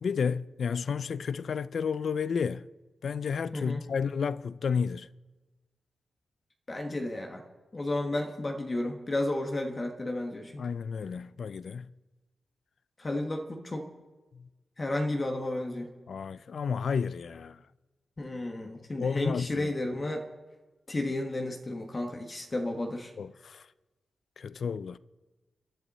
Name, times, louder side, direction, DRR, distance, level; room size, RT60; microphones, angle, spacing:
voice 1, 0.0-2.6 3.0-5.1 10.6-11.9 14.3-14.5 16.1-17.6 19.0-19.7 23.2-23.7 24.4-25.0, left 6 dB, 60° left, 0.4 m, -31 dB
voice 2, 3.5-3.8 6.7-7.4 7.7-10.7 13.0-13.9 14.8-15.9 18.2-20.3 20.9-23.1, left 1 dB, 25° left, 1.3 m, -32 dB
29.0 x 11.5 x 4.1 m
wide cardioid pair, 140°, 0 cm